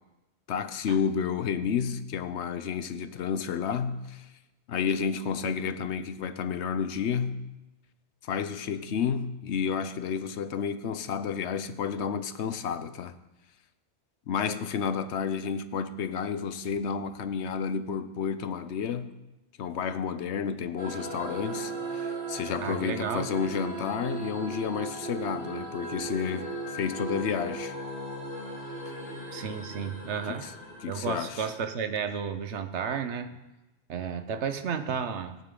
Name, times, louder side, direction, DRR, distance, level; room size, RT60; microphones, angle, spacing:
voice 1, 0.5-4.3 4.7-7.4 8.2-13.1 14.3-19.1 19.6-27.7 30.3-30.5 30.8-31.5, left 6 dB, 75° left, 1.0 m, -31 dB
sound 1, 20.8-31.7, right 2 dB, 60° right, 5.7 m, -37 dB
voice 2, 22.6-23.3 29.3-30.5 30.9-33.4 33.9-35.4, right 7 dB, 75° right, 1.1 m, -32 dB
18.5 x 9.1 x 3.8 m
omnidirectional pair, 1.2 m